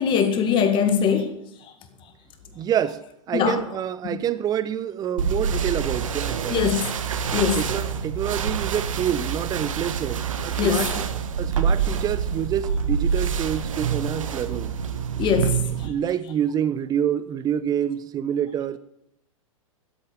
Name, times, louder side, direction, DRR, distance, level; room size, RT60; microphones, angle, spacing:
voice 1, 0.0-1.4 1.6-1.7 3.3-3.6 6.5-6.9 7.3-7.7 10.6-11.0 15.2-15.9, left 7 dB, 30° left, 2.0 m, -22 dB
voice 2, 2.5-3.0 3.3-6.6 7.6-11.0 11.4-14.7 15.8-18.8, right 9 dB, 20° right, 0.8 m, -27 dB
sound 1, 5.2-15.9, right 6 dB, 70° right, 1.4 m, -26 dB
12.5 x 8.3 x 8.8 m
figure-of-eight pair, 110°, 18 cm